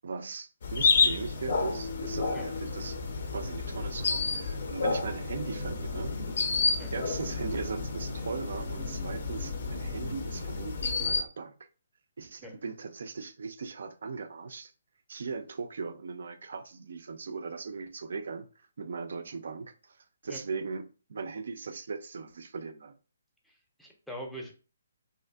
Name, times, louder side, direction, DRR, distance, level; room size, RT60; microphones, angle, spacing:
voice 1, 0.0-3.0 3.3-6.1 6.9-11.5 12.2-14.7 15.1-22.9, right 4 dB, 65° right, 0.3 m, -39 dB
sound 1, 0.6-11.2, left 4 dB, 60° left, 0.4 m, -30 dB
voice 2, 23.4-24.5, equal, ahead, 0.5 m, -42 dB
2.5 x 2.4 x 2.2 m
hypercardioid pair, 145°, 0 cm